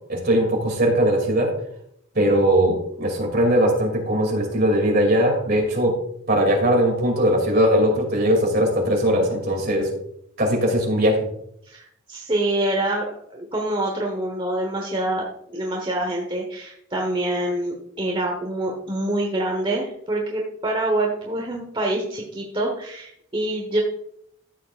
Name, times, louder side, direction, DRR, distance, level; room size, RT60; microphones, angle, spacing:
voice 1, 0.1-1.5 2.1-6.0 6.3-9.9 10.4-11.3, equal, 50° right, 1 dB, 2.6 m, -20 dB
voice 2, 11.6-23.8, right 1 dB, 25° right, 0 dB, 1.1 m, -26 dB
13.0 x 7.4 x 2.5 m, 0.72 s
head